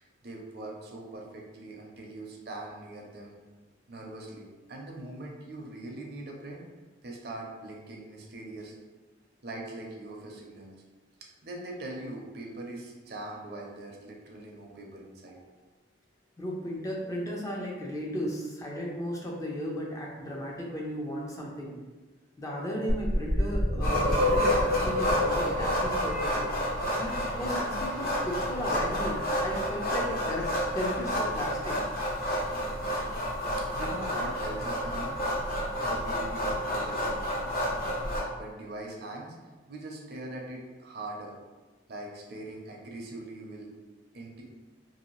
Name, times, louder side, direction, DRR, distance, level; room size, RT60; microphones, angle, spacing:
voice 1, 0.0-3.4 3.9-6.6 7.0-8.7 9.4-10.7 11.4-15.4 33.7-35.1 35.8-37.2 38.4-39.3 39.7-41.4 41.9-43.7 44.1-44.4, right 2 dB, 55° right, -1 dB, 0.6 m, -41 dB
voice 2, 16.4-21.7 22.4-26.5 27.0-30.5 30.7-31.8 32.2-32.3, equal, 20° left, -3 dB, 0.4 m, -35 dB
sound 1, 22.9-27.7, left 1 dB, 70° left, 1.1 m, -29 dB
sound 2, 23.8-38.2, equal, 50° left, 0.8 m, -30 dB
2.7 x 2.7 x 3.0 m, 1.3 s
head